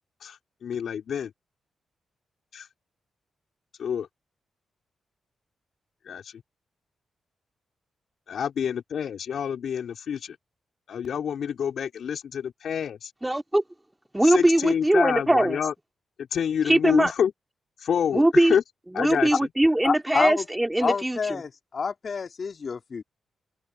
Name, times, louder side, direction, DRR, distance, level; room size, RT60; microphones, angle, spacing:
voice 1, 0.2-1.3 2.5-2.7 3.8-4.1 6.0-6.3 8.3-10.3 10.9-13.1 14.2-15.7 16.2-17.3 17.8-18.6 18.9-19.3, left 8 dB, 70° left, 5.1 m, -27 dB
voice 2, 13.2-13.6 14.1-15.6 16.6-17.1 18.1-18.6 18.9-21.4, right 1 dB, 15° right, 3.4 m, -21 dB
voice 3, 19.8-20.4 20.8-23.0, left 5 dB, 55° left, 3.4 m, -28 dB
open air
supercardioid pair, 45°, 0 cm